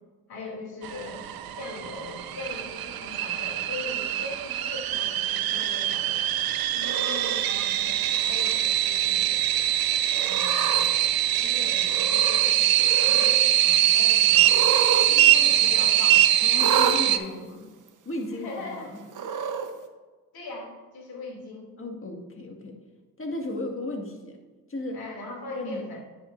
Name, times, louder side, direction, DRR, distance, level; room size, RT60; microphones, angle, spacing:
voice 1, 0.3-6.5 7.4-9.7 10.1-10.8 11.3-12.7 13.0-14.5 15.1-16.3 16.8-17.4 18.3-18.9 20.3-21.7 24.9-26.0, left 2 dB, 75° left, -1 dB, 2.8 m, -40 dB
sound 1, 0.8-17.2, right 12 dB, 70° right, 0.6 m, -23 dB
voice 2, 6.7-7.4 16.4-17.7 18.1-19.0 21.8-22.8 23.2-24.4 24.7-25.0 25.5-25.9, left 2 dB, 35° left, 1 dB, 2.0 m, -35 dB
Cat, 6.8-7.4 8.1-8.6 9.0-9.1 10.1-10.9 11.9-12.5 12.8-13.4 14.4-15.1 15.4-15.5 16.6-17.0 17.9-18.0 19.1-19.7, right 6 dB, 55° right, 1.0 m, -29 dB
9.7 x 8.3 x 2.6 m, 1.3 s
supercardioid pair, 50°, 37 cm